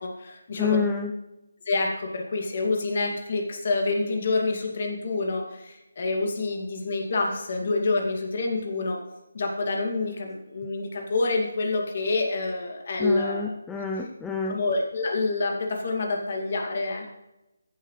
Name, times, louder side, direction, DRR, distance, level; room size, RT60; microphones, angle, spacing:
voice 1, 0.0-0.9 1.7-9.0 9.3-13.4 14.0-14.1 14.5-17.1, left 3 dB, 50° left, 1 dB, 2.3 m, -27 dB
voice 2, 0.6-1.1 13.0-14.6, left 5 dB, 5° left, 1 dB, 0.5 m, -28 dB
15.0 x 7.5 x 3.2 m, 0.94 s
figure-of-eight pair, 160°, 0 cm